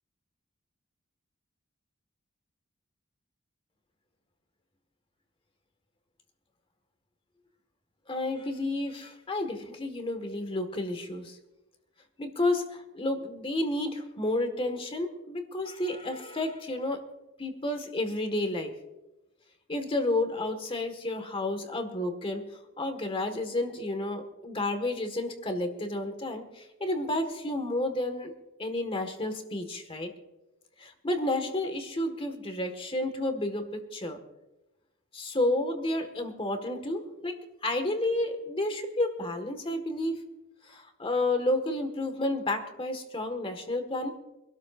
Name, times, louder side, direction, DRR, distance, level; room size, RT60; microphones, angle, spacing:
voice 1, 8.1-11.4 12.2-17.0 17.4-18.7 19.7-22.5 22.8-28.3 28.6-30.1 30.8-34.2 35.1-37.4 37.6-40.2 40.7-44.1, left 1 dB, 25° left, 7 dB, 1.6 m, -31 dB
25.5 x 12.5 x 2.5 m, 0.99 s
head